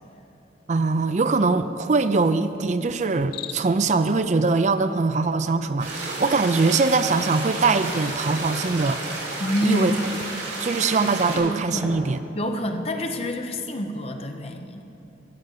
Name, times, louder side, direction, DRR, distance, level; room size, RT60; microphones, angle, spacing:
voice 1, 0.7-9.0 9.6-9.9 10.4-12.2, right 3 dB, 40° right, 11 dB, 0.4 m, -22 dB
Cricket, 3.1-3.9, left 11 dB, 60° left, 0.5 m, -38 dB
sound 1, 5.8-11.4, right 2 dB, 85° right, 3.2 m, -32 dB
sound 2, 8.3-8.5 10.0-10.3 11.7-12.1 12.5-12.6, equal, 15° right, 1.3 m, -38 dB
voice 2, 9.4-10.0 10.7-10.8 11.3-12.0 12.3-14.8, equal, 35° left, 5 dB, 0.8 m, -27 dB
13.5 x 5.0 x 9.1 m, 2.9 s
head